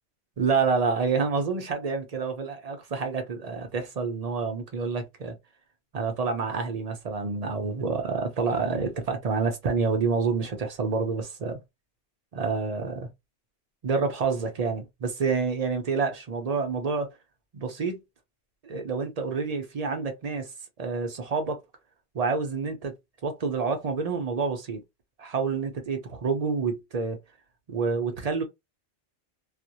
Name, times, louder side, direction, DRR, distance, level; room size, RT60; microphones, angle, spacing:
voice 1, 0.4-5.3 5.9-11.6 12.3-13.1 13.8-17.1 17.5-18.0 18.6-20.5 20.8-21.6 22.1-22.9 23.2-24.8 25.2-27.2 27.7-28.4, right 4 dB, 45° right, 0.5 m, -28 dB
2.4 x 2.1 x 2.8 m
omnidirectional pair, 1.2 m